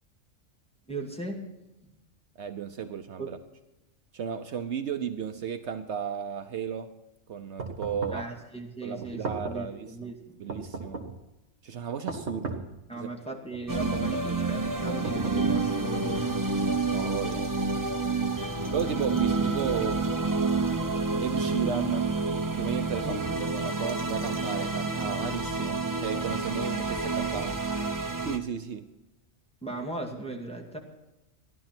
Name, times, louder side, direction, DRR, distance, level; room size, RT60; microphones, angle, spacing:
voice 1, 0.9-1.4 3.2-3.4 8.1-10.4 12.9-16.3 23.0-23.2 29.6-30.8, right 2 dB, 5° left, -2 dB, 2.4 m, -37 dB
voice 2, 2.4-3.4 4.1-6.9 7.3-8.3 8.8-9.9 10.4-11.0 11.6-12.6 13.0-13.1 14.3-14.4 16.9-17.5 18.7-20.1 20.5-20.9 21.2-22.1 22.6-27.6 28.2-28.8, right 7 dB, 65° right, 8 dB, 1.1 m, -34 dB
sound 1, 7.6-8.3 9.0-9.7 10.5-11.2 12.1-12.8 13.5-14.1 14.9-15.7, right 3 dB, 85° right, 2.1 m, -37 dB
sound 2, 13.7-28.4, right 3 dB, 20° right, 0.9 m, -29 dB
15.0 x 11.5 x 6.0 m, 0.98 s
omnidirectional pair, 1.3 m